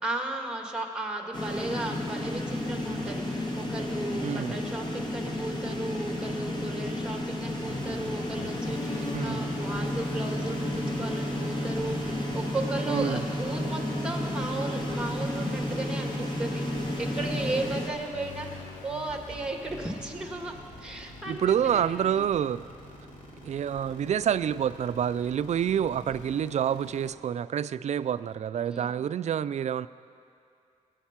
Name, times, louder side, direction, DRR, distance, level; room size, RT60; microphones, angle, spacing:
voice 1, 0.0-16.7 17.0-22.2 26.1-26.3 28.7-29.0, right 2 dB, 5° right, 2 dB, 1.8 m, -35 dB
sound 1, 1.3-17.9, left 1 dB, 35° left, 1.7 m, -33 dB
voice 2, 4.2-4.5 9.1-9.4 12.9-13.2 21.3-22.6 23.4-29.9, right 9 dB, 60° right, 15 dB, 0.4 m, -28 dB
sound 2, 7.6-27.1, equal, 75° left, 2.7 m, -37 dB
20.0 x 8.8 x 5.9 m, 2.4 s
wide cardioid pair, 105°, 13 cm